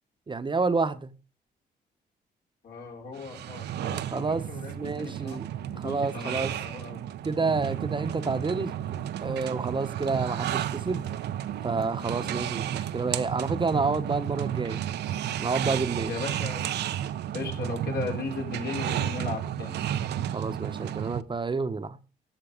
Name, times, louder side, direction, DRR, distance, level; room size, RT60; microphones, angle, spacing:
voice 1, 0.3-1.1 4.1-4.5 4.7-5.5 5.8-6.6 7.2-8.7 9.2-11.0 11.6-14.8 15.4-16.1 20.3-22.0, right 4 dB, 30° right, 1.1 m, -29 dB
voice 2, 2.6-5.4 5.7-7.0 16.1-16.8 17.3-19.8, left 4 dB, 65° left, 4.8 m, -37 dB
sound 1, 3.2-21.2, right 11 dB, 75° right, 0.8 m, -32 dB
13.5 x 7.4 x 5.2 m
cardioid pair, 80°, 17 cm